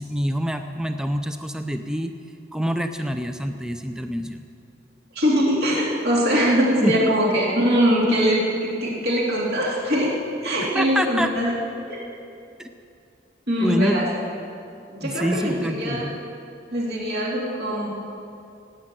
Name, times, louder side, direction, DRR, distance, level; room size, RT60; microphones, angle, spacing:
voice 1, 0.0-2.1 2.5-4.5 6.8-7.2 10.7-11.3 12.6-12.7 13.6-14.0 15.0-16.1, equal, 5° right, 6 dB, 0.6 m, -26 dB
voice 2, 5.1-10.1 10.4-11.5 11.9-12.0 13.5-14.1 14.9-16.1 16.7-17.9, equal, 55° right, -4 dB, 3.0 m, -22 dB
16.0 x 8.6 x 9.1 m, 2.6 s
head